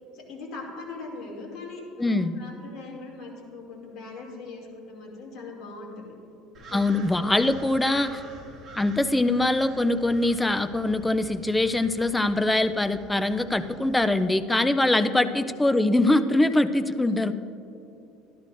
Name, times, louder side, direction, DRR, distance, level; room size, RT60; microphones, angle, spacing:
voice 1, 0.1-6.1 6.6-6.9 7.7-8.1 15.0-15.4, left 3 dB, 55° left, -2 dB, 2.6 m, -41 dB
voice 2, 2.0-2.3 6.7-8.1 8.7-17.3, left 2 dB, 10° left, 11 dB, 0.4 m, -23 dB
sound 1, 6.5-14.2, right 2 dB, 30° right, 1.9 m, -47 dB
13.0 x 12.0 x 2.6 m, 2.7 s
cardioid pair, 140°, 0 cm